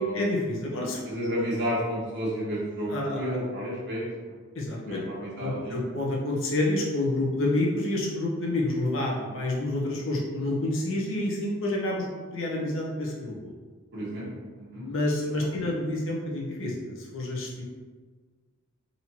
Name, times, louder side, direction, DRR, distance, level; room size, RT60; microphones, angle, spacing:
voice 1, 0.1-1.0 2.9-3.4 4.5-13.5 14.7-17.6, left 1 dB, 70° left, -2 dB, 0.8 m, -29 dB
voice 2, 1.0-4.4 4.9-5.9 13.9-14.9 15.4-15.5, equal, 55° right, -8 dB, 1.5 m, -31 dB
4.1 x 2.9 x 2.8 m, 1.4 s
head